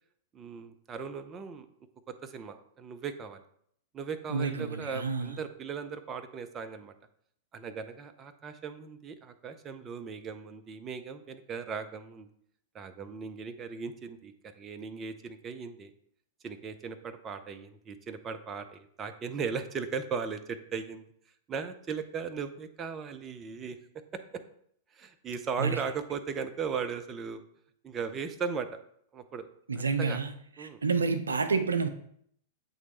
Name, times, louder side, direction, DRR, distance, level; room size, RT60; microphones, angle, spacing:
voice 1, 0.3-1.7 2.1-3.4 3.9-6.9 7.5-12.3 12.7-15.9 16.4-21.0 21.5-23.8 24.3-24.4 24.9-27.4 27.8-28.7 29.1-29.5 29.8-30.2 30.6-30.8, right 6 dB, 25° right, 8 dB, 0.6 m, -37 dB
voice 2, 4.3-5.3 25.6-25.8 29.7-30.3 30.6-31.9, right 4 dB, 80° right, 10 dB, 0.5 m, -29 dB
8.1 x 3.1 x 4.3 m, 0.68 s
figure-of-eight pair, 100°, 0 cm